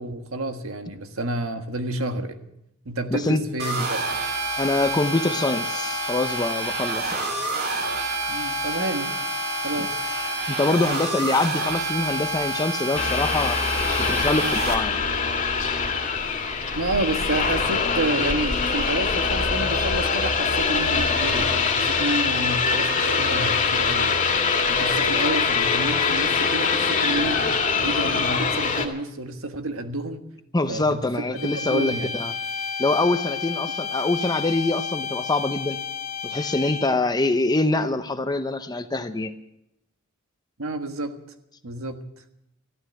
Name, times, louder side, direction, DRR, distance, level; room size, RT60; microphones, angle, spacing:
voice 1, 0.0-2.4 2.8-4.1 8.3-9.2 9.6-10.1 16.7-24.2 24.7-27.4 27.8-30.2 30.7-32.2 33.6-33.7 40.6-41.2 41.6-42.0, right 2 dB, 70° right, 7 dB, 1.5 m, -30 dB
voice 2, 3.1-3.4 4.6-7.3 10.5-13.6 14.0-15.0 30.5-32.3 32.8-35.8 36.2-39.3, left 2 dB, 20° left, 9 dB, 0.7 m, -24 dB
sound 1, 3.6-14.7, right 2 dB, 50° right, 2.7 m, -28 dB
sound 2, 12.9-28.9, left 5 dB, 35° left, 2.0 m, -23 dB
sound 3, 31.3-37.1, left 6 dB, 70° left, 2.2 m, -31 dB
14.5 x 12.5 x 7.7 m, 0.82 s
head